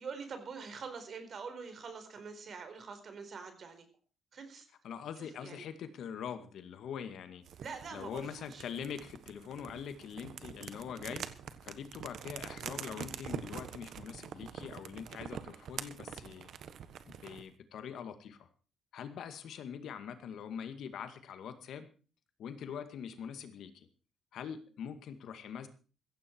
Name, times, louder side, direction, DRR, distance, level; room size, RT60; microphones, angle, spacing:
voice 1, 0.0-3.8 4.3-4.7 5.2-5.6 7.6-8.6, right 5 dB, 45° right, 8 dB, 4.4 m, -45 dB
voice 2, 4.8-7.4 7.9-11.3 11.6-16.5 17.1-18.5 18.9-21.9 22.4-23.9 24.3-25.7, left 8 dB, 70° left, 9 dB, 2.1 m, -43 dB
sound 1, 7.4-17.5, right 8 dB, 60° right, 1.4 m, -45 dB
15.5 x 15.0 x 4.6 m, 0.36 s
cardioid pair, 120°, 0 cm